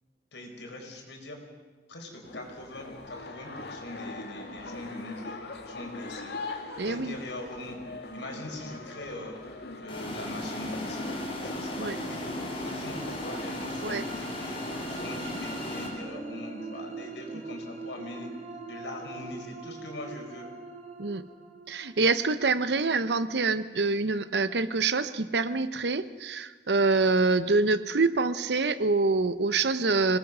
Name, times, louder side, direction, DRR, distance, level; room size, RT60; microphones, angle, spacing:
voice 1, 0.3-1.4 1.9-5.4 5.7-6.3 6.8-7.8 8.1-9.3 9.8-11.2 11.4-18.3 18.7-20.5, left 1 dB, 90° left, 2 dB, 4.6 m, -41 dB
sound 1, 2.2-15.0, left 2 dB, 65° left, 2.3 m, -42 dB
voice 2, 6.8-7.1 11.8-11.9 13.8-14.0 21.0-21.2 21.7-30.2, right 3 dB, 70° right, 14 dB, 0.9 m, -26 dB
sound 2, 9.9-15.9, left 1 dB, 30° left, 4.3 m, -36 dB
sound 3, 12.3-24.1, right 3 dB, 40° right, 2.9 m, -44 dB
26.0 x 18.5 x 6.2 m, 1.4 s
head